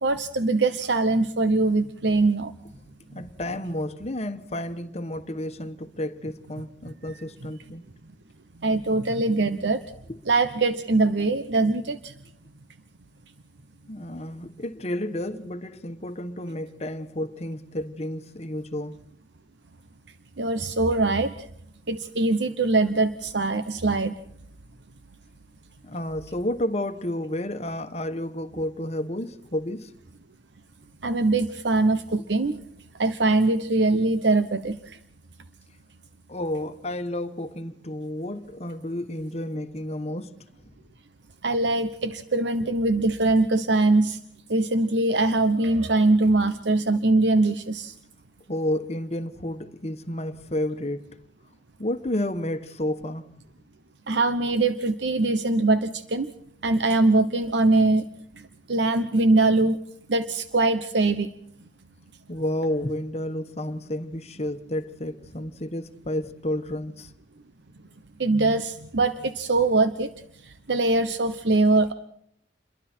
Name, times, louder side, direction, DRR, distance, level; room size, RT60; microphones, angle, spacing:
voice 1, 0.0-2.5 8.6-9.8 10.3-12.1 20.4-21.3 21.9-24.1 31.0-32.6 33.0-35.0 41.4-44.2 44.5-47.9 54.1-56.3 56.6-58.1 58.4-59.8 60.1-61.3 68.2-70.1 70.4-71.9, right 2 dB, 80° right, 1.0 m, -22 dB
voice 2, 3.1-7.8 13.9-19.0 25.8-29.9 33.9-34.0 36.3-40.3 48.5-51.0 51.8-53.2 62.3-67.1, left 1 dB, 35° left, 1.3 m, -31 dB
28.5 x 22.5 x 4.5 m
head